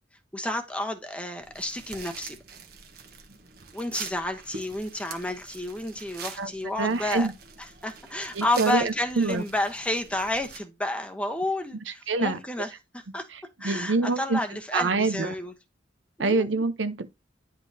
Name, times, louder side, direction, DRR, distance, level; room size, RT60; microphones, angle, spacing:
voice 1, 0.3-2.4 3.7-7.3 7.8-13.3 13.6-15.5 16.2-16.5, left 1 dB, 5° left, 0.9 m, -31 dB
sound 1, 1.4-10.6, right 6 dB, 55° right, 1.2 m, -44 dB
voice 2, 6.8-7.3 8.4-9.4 12.1-12.4 13.6-14.4 14.7-15.3 16.2-17.1, right 3 dB, 75° right, 0.7 m, -25 dB
10.0 x 5.1 x 2.7 m
head